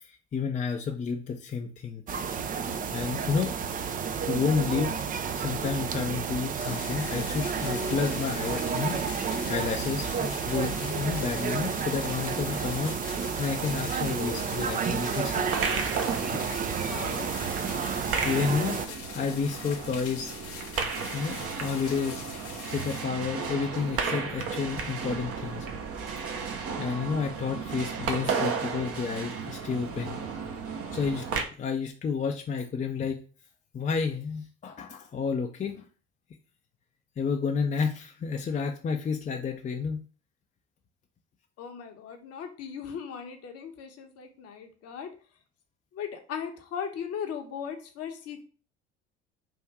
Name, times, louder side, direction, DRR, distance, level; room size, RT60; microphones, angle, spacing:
voice 1, 0.1-2.0 2.9-3.5 3.9-5.0 5.3-9.1 9.5-13.1 13.4-15.4 15.8-16.4 18.0-20.3 21.1-22.2 22.6-25.7 26.8-30.2 30.9-31.3 31.6-33.2 33.7-35.8 37.2-40.0, left 5 dB, 20° left, 2 dB, 0.6 m, -31 dB
sound 1, 2.1-18.9, right 6 dB, 25° right, 0.4 m, -31 dB
sound 2, 6.6-23.0, left 5 dB, 70° left, 1.0 m, -42 dB
sound 3, 15.2-31.4, right 5 dB, 40° right, 0.9 m, -34 dB
voice 2, 16.4-17.3 41.6-45.1 45.9-48.4, left 7 dB, 45° left, 5 dB, 0.9 m, -38 dB
3.6 x 2.6 x 4.6 m, 0.39 s
figure-of-eight pair, 60°, 35 cm